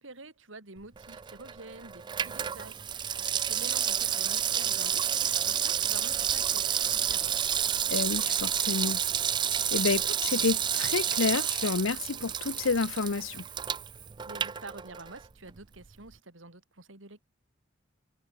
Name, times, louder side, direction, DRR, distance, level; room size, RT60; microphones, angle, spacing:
voice 1, 0.0-2.8 3.2-7.5 14.2-17.2, right 3 dB, 75° right, 3.0 m, -48 dB
Water tap faucet / Sink (filling or washing), 1.0-15.3 15.6-15.7, right 9 dB, 25° right, 0.3 m, -30 dB
voice 2, 7.9-9.0 9.7-13.4, left 4 dB, 85° left, 0.8 m, -29 dB
head